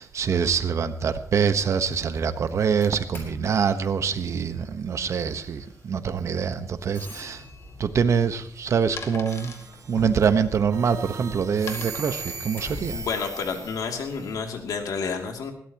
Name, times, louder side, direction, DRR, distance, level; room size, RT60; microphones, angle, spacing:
voice 1, 0.0-7.4 7.8-9.5 9.9-13.0, right 6 dB, 55° right, 10 dB, 1.2 m, -25 dB
Doorbell, 1.7-14.8, left 2 dB, 40° left, 5.1 m, -46 dB
sound 1, 7.5-13.6, left 5 dB, 55° left, 2.2 m, -43 dB
sound 2, 9.3-10.2 10.7-14.3, right 4 dB, 70° right, 3.2 m, -39 dB
voice 2, 12.9-15.5, left 5 dB, 75° left, 3 dB, 2.8 m, -30 dB
20.5 x 17.0 x 3.0 m, 0.63 s
wide cardioid pair, 135°, 6 cm